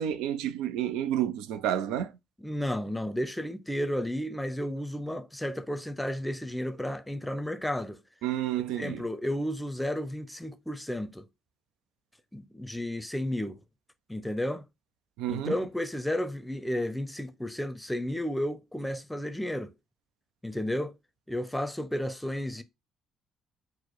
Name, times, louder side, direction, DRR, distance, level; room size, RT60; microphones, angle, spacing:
voice 1, 0.0-2.1 8.2-9.0 15.2-15.6, right 11 dB, 75° right, 0.4 m, -30 dB
voice 2, 2.4-8.0 8.8-11.2 12.3-13.6 14.1-14.6 15.3-19.7 20.4-20.9 21.3-22.6, left 1 dB, 5° left, 0.6 m, -32 dB
4.2 x 2.1 x 4.3 m
hypercardioid pair, 55°, 0 cm